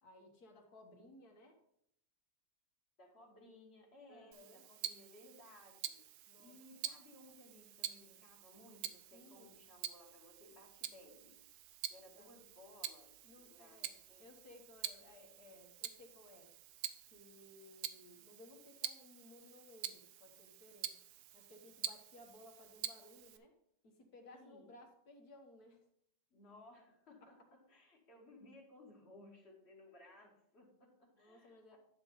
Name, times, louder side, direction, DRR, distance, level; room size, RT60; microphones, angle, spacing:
voice 1, 0.0-1.6 4.1-4.6 6.3-6.6 9.1-9.6 12.2-12.3 13.2-16.5 17.1-21.0 21.3-23.5 23.8-25.9 31.1-31.8, left 1 dB, 75° left, 2 dB, 2.0 m, -60 dB
voice 2, 3.0-6.1 6.4-11.4 11.9-13.8 14.1-14.3 24.2-24.7 26.3-31.8, left 1 dB, 45° left, 0 dB, 1.9 m, -60 dB
Tick-tock, 4.3-23.4, right 11 dB, 85° right, 1.1 m, -48 dB
10.5 x 4.0 x 5.4 m, 0.74 s
omnidirectional pair, 1.6 m